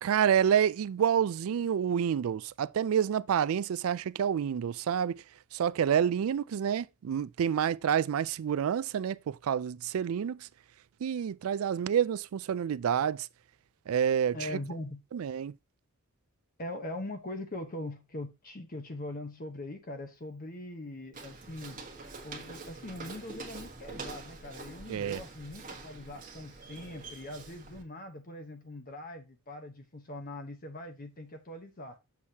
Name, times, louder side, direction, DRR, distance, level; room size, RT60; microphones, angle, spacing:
voice 1, 0.0-5.2 5.5-10.5 11.0-13.3 13.9-14.5 15.1-15.5 24.9-25.2, right 8 dB, 85° right, 0.3 m, -28 dB
voice 2, 14.3-15.0 16.6-21.8 22.2-32.0, left 1 dB, 45° left, 1.0 m, -41 dB
Walk footsteps, 21.1-27.8, right 3 dB, 40° right, 1.3 m, -45 dB
7.2 x 6.4 x 2.8 m
head